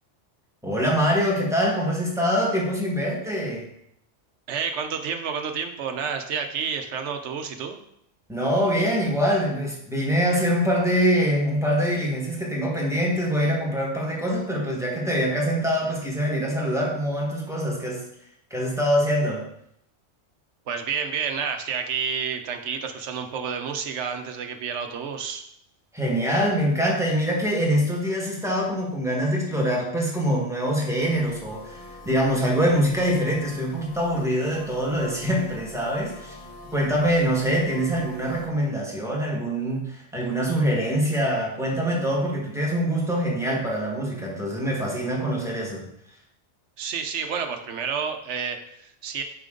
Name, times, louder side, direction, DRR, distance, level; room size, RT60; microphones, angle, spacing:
voice 1, 0.6-3.7 8.3-18.0 18.5-19.5 25.9-31.8 32.0-36.4 36.7-45.8, equal, ahead, -3 dB, 1.4 m, -24 dB
voice 2, 4.5-7.8 20.7-25.4 46.8-49.2, right 6 dB, 70° right, 5 dB, 1.1 m, -30 dB
sound 1, 30.9-38.5, left 2 dB, 30° left, 1.2 m, -44 dB
6.7 x 5.3 x 3.8 m, 0.73 s
omnidirectional pair, 1.2 m